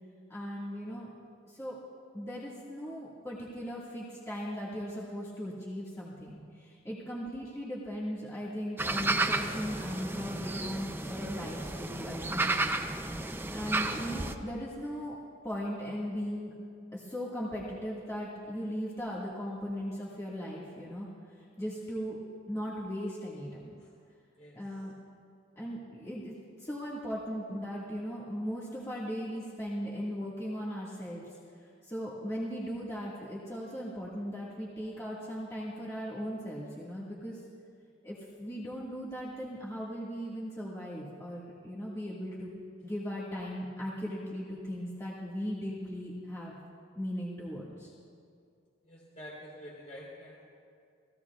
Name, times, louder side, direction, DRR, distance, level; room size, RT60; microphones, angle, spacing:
voice 1, 0.3-1.1 1.5-1.8 2.1-12.8 13.5-15.2 15.4-16.5 16.9-21.1 21.3-22.2 22.5-23.7 24.5-24.9 25.6-31.4 31.8-37.4 38.0-46.6 47.0-47.9, equal, 15° left, -7 dB, 1.8 m, -38 dB
sound 1, 8.8-14.3, right 2 dB, 10° right, 0.5 m, -32 dB
voice 2, 48.9-50.6, equal, 40° left, -6 dB, 3.5 m, -47 dB
28.0 x 17.5 x 2.4 m, 2.3 s
head